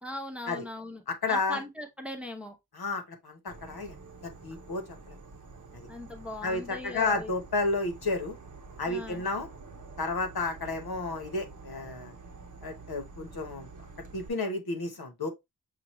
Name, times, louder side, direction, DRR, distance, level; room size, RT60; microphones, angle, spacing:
voice 1, 0.0-1.0 1.3-2.6 5.9-7.3 8.9-9.2, left 2 dB, 5° right, 0.8 m, -39 dB
voice 2, 1.1-1.6 2.7-3.9 4.2-5.1 5.7-5.9 6.4-8.3 8.8-9.5 10.0-12.1 12.6-13.7 14.1-15.3, left 3 dB, 70° left, 1.1 m, -32 dB
Insect / Frog, 3.5-14.3, right 4 dB, 50° right, 0.9 m, -48 dB
5.8 x 2.5 x 3.0 m
wide cardioid pair, 90°, 38 cm